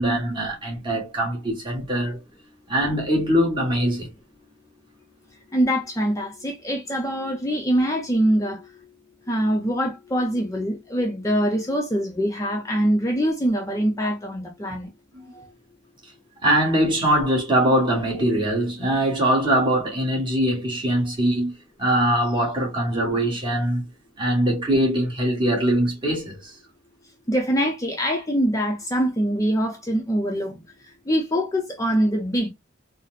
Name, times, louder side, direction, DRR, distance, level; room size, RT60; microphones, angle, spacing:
voice 1, 0.0-2.2 2.7-4.1 15.1-15.2 16.4-21.5 21.8-23.8 24.2-26.5, right 1 dB, 25° right, 1.3 m, -22 dB
voice 2, 5.5-8.7 9.3-14.9 15.3-15.5 27.3-30.6 31.1-32.5, equal, 15° left, 0.5 m, -23 dB
4.0 x 2.0 x 2.4 m
head